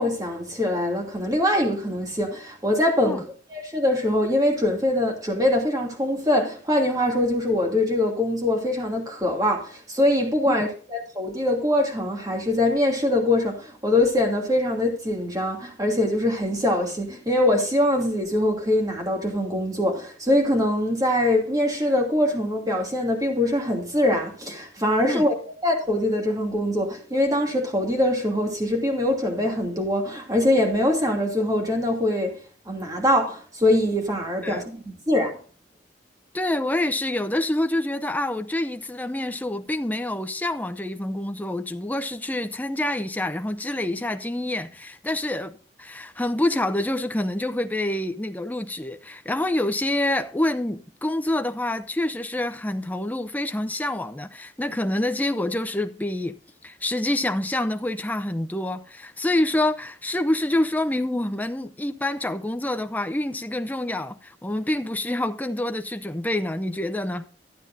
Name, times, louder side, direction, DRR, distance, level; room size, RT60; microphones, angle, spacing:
voice 1, 0.0-25.3 25.6-32.4 32.7-35.4, left 1 dB, 20° right, 2.6 m, -23 dB
voice 2, 36.3-56.3 56.6-67.3, left 1 dB, 10° left, 0.6 m, -27 dB
13.0 x 8.9 x 2.6 m
head